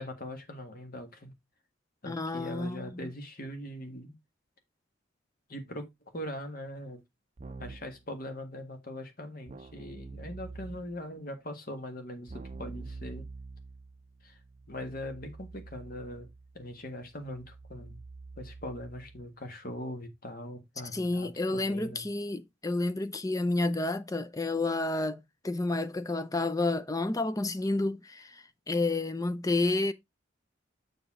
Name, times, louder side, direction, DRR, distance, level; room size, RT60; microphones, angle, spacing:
voice 1, 0.0-1.3 2.0-4.1 5.5-7.0 7.6-13.2 14.2-14.4 14.7-16.3 16.5-18.0 18.4-22.0, left 1 dB, 45° left, 1.7 m, -41 dB
voice 2, 2.1-3.1 20.9-29.9, left 2 dB, 15° left, 0.5 m, -30 dB
Keyboard (musical), 7.4-8.0 9.5-11.1 12.3-19.3, right 3 dB, 35° right, 0.5 m, -46 dB
7.0 x 5.7 x 3.6 m
head